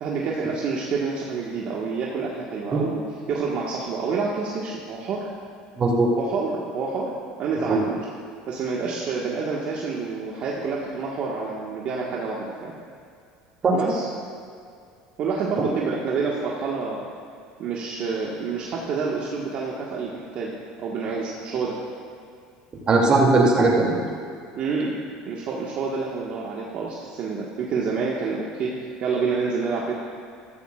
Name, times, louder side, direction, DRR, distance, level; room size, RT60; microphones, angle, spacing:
voice 1, 0.0-3.0 3.3-5.3 6.2-7.1 7.4-8.0 8.5-12.7 13.7-14.1 15.2-17.1 17.6-20.5 20.8-21.8 24.5-25.0 25.2-29.9, right 4 dB, 55° right, -4 dB, 1.5 m, -28 dB
voice 2, 5.8-6.1 7.7-7.8 13.6-13.9 22.9-24.0, right 3 dB, 35° right, -1 dB, 2.6 m, -19 dB
14.0 x 14.0 x 2.5 m, 2.4 s
supercardioid pair, 100°, 3 cm